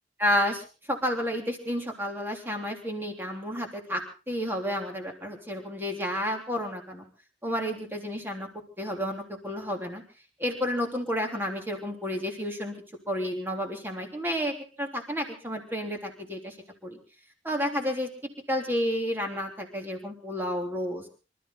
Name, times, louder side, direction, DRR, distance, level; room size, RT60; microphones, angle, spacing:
voice 1, 0.2-7.0 7.4-8.5 8.8-10.0 10.4-12.7 13.1-16.6 16.8-17.0 17.4-18.1 18.5-21.0, equal, 10° right, 2 dB, 3.4 m, -31 dB
26.5 x 14.0 x 3.9 m, 0.36 s
head